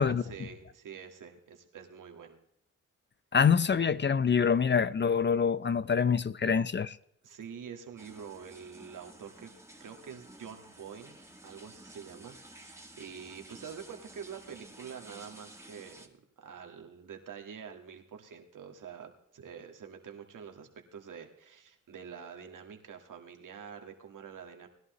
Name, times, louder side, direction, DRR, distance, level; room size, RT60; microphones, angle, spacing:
voice 1, 0.0-2.4 7.2-9.5 9.8-11.2 11.4-24.7, right 7 dB, 75° right, 1.8 m, -46 dB
voice 2, 3.3-7.0, left 6 dB, 35° left, 0.5 m, -25 dB
sound 1, 8.0-16.1, right 1 dB, 10° right, 2.1 m, -53 dB
19.5 x 11.5 x 3.1 m
supercardioid pair, 50°, 31 cm